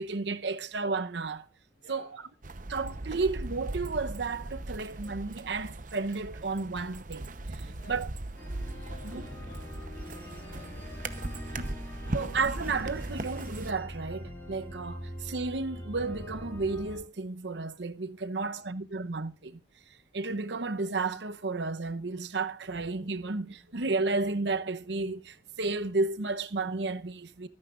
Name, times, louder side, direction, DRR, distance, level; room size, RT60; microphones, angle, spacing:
voice 1, 0.0-1.4 1.9-2.1 2.7-7.3 7.9-8.1 9.1-9.3 12.1-19.6 20.1-27.5, right 3 dB, 70° right, 0.8 m, -32 dB
voice 2, 1.7-2.3 7.6-8.1 8.7-11.3 11.7-12.3 18.2-18.8, left 2 dB, 55° left, 6.1 m, -57 dB
sound 1, 2.4-13.7, right 2 dB, 45° right, 0.8 m, -39 dB
sound 2, 8.4-17.0, equal, 10° left, 4.3 m, -42 dB
24.5 x 9.7 x 2.5 m
head